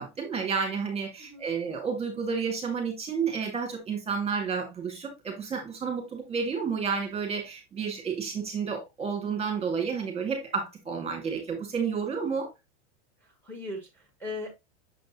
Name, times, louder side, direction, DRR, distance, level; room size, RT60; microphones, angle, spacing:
voice 1, 0.0-12.5, right 6 dB, 15° right, 2.1 m, -31 dB
voice 2, 13.2-14.5, left 2 dB, 5° left, 1.9 m, -39 dB
6.9 x 5.1 x 2.9 m
supercardioid pair, 130°, 35 cm